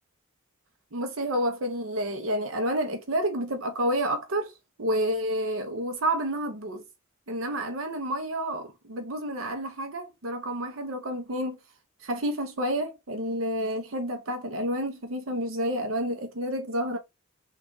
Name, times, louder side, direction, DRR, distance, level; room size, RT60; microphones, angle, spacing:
voice 1, 0.9-6.8 7.3-11.6 12.0-17.0, equal, 75° right, 0.8 m, -29 dB
3.5 x 2.5 x 3.8 m
head